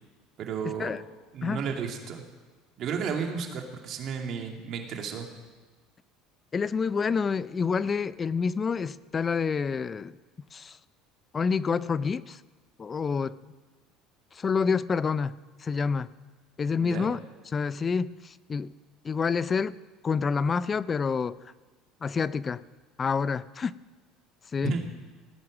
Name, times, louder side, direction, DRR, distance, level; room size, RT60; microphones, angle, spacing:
voice 1, 0.4-0.9 1.3-2.3 2.8-5.3 16.8-17.1 24.6-24.8, right 6 dB, 50° right, 3 dB, 2.4 m, -33 dB
voice 2, 6.5-10.2 10.5-10.8 11.3-12.4 12.8-13.4 14.3-16.1 16.6-17.2 17.5-18.7 19.0-19.7 20.0-21.4 22.0-22.6 23.0-23.7 24.5-24.8, left 5 dB, 30° left, 18 dB, 0.4 m, -28 dB
17.5 x 9.5 x 6.3 m, 1.3 s
supercardioid pair, 105°, 0 cm